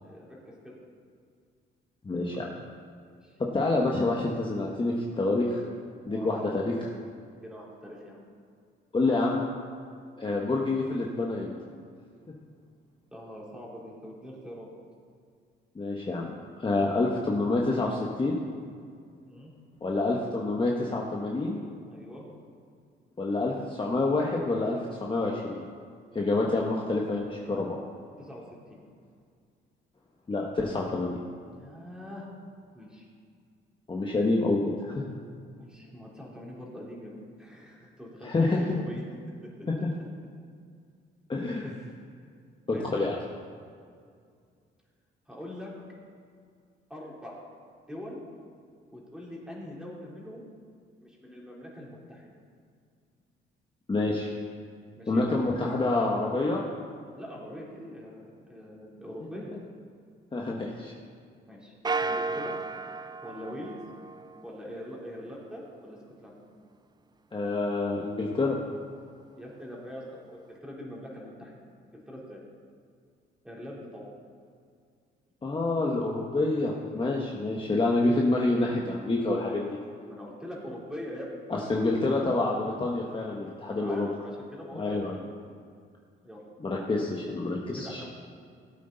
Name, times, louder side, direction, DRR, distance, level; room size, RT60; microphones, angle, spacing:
voice 1, 0.0-0.7 3.1-3.4 6.1-6.5 7.4-8.2 13.1-14.7 19.2-19.5 21.9-22.3 28.2-28.8 31.5-32.3 32.7-33.1 35.6-37.1 37.4-39.0 39.4-39.7 41.8-42.3 42.7-43.1 45.3-45.7 46.9-47.4 47.9-48.2 48.9-50.5 51.0-52.3 55.0-55.2 57.1-59.5 61.5-61.7 62.0-62.5 63.2-63.8 64.4-66.3 69.4-72.4 73.4-74.1 80.1-81.4 83.5-85.3 86.2-86.5 87.8-88.1, equal, 5° right, -4 dB, 3.5 m, -43 dB
voice 2, 2.0-2.5 3.4-5.6 6.1-6.6 8.9-9.4 10.2-11.5 15.7-16.3 16.6-18.4 19.8-21.6 23.2-25.6 26.1-27.8 30.3-31.2 33.9-35.1 38.2-38.6 41.3-41.7 42.7-43.2 53.9-54.3 55.1-56.6 60.3-60.9 67.3-68.6 75.4-79.8 81.5-84.1 84.7-85.2 86.6-88.0, left 2 dB, 25° left, -2 dB, 1.3 m, -27 dB
sound 1, 61.8-64.6, right 3 dB, 20° right, 0.4 m, -33 dB
16.5 x 8.5 x 4.0 m, 2.2 s
cardioid pair, 90°, 20 cm